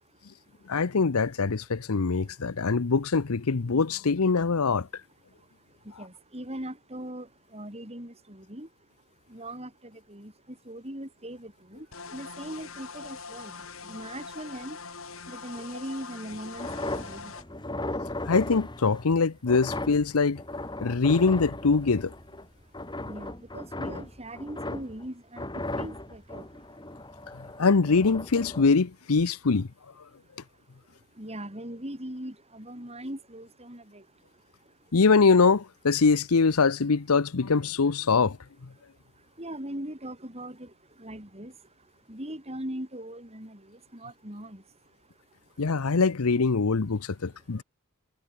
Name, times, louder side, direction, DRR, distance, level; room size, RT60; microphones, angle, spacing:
voice 1, 0.7-4.9 18.3-20.4 20.8-22.1 27.6-29.7 34.9-38.4 45.6-47.6, left 4 dB, 85° left, 0.8 m, -23 dB
voice 2, 6.0-7.3 7.5-8.7 9.3-10.3 10.7-11.9 12.1-13.5 13.8-14.8 15.3-17.3 23.0-25.5 25.8-26.4 31.2-34.0 39.4-40.7 41.0-41.5 42.1-44.6, right 1 dB, 30° right, 7.1 m, -40 dB
sound 1, 11.9-17.4, left 4 dB, 70° left, 7.2 m, -42 dB
sound 2, 16.3-22.5 22.7-25.1 25.4-28.7, left 1 dB, 20° left, 4.5 m, -37 dB
head